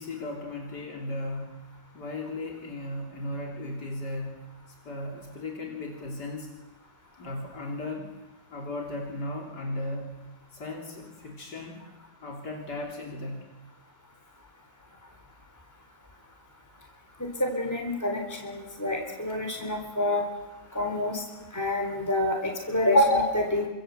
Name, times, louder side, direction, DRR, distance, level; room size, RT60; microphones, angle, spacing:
voice 1, 0.0-1.7 1.9-6.5 7.2-8.1 8.5-10.2 10.5-11.8 12.2-13.5, left 2 dB, 90° left, 0 dB, 3.9 m, -36 dB
voice 2, 17.2-20.2 20.7-21.2 21.5-23.7, left 1 dB, 10° left, 2 dB, 4.1 m, -26 dB
29.0 x 26.0 x 8.0 m, 1.1 s
omnidirectional pair, 1.7 m